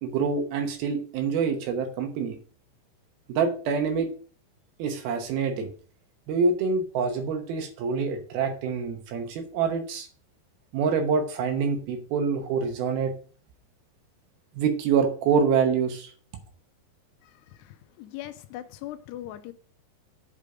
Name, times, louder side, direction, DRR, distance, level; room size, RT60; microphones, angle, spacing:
voice 1, 0.0-2.4 3.3-4.1 4.8-5.7 6.3-10.1 10.7-13.1 14.6-16.1, right 5 dB, 70° right, 2.7 m, -26 dB
voice 2, 17.2-19.5, left 13 dB, 85° left, 2.7 m, -40 dB
8.4 x 5.2 x 4.9 m
omnidirectional pair, 4.9 m